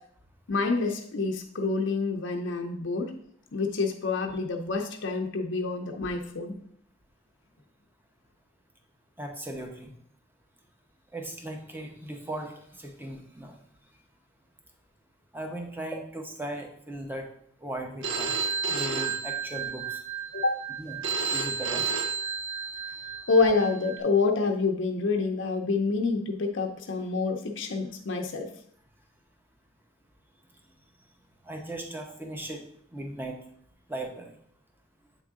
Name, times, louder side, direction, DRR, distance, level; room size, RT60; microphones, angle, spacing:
voice 1, 0.5-3.1 3.5-6.6 20.3-20.5 23.3-28.5, left 4 dB, 75° left, 3 dB, 0.6 m, -27 dB
voice 2, 9.2-9.9 11.1-12.5 12.8-13.6 15.3-17.3 17.6-18.3 18.7-20.0 20.8-21.0 21.3-21.8 31.4-32.6 32.9-33.4 33.9-34.3, right 1 dB, 10° right, 2 dB, 0.9 m, -37 dB
Telephone, 18.0-24.0, right 5 dB, 80° right, 0.7 m, -32 dB
8.0 x 3.6 x 3.6 m, 0.66 s
head